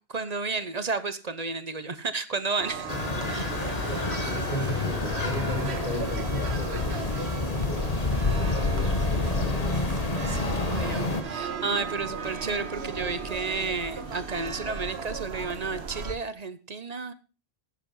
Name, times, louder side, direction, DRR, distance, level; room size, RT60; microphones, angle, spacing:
voice 1, 0.1-2.9 3.3-3.6 10.3-17.1, right 4 dB, 40° right, 13 dB, 0.9 m, -32 dB
sound 1, 2.6-16.1, right 5 dB, 85° right, 1.5 m, -36 dB
sound 2, 2.9-11.2, left 3 dB, 35° left, 1.5 m, -28 dB
voice 2, 3.4-7.0 7.3-10.0, equal, 65° left, -5 dB, 3.5 m, -37 dB
11.0 x 8.2 x 5.5 m, 0.34 s
omnidirectional pair, 1.1 m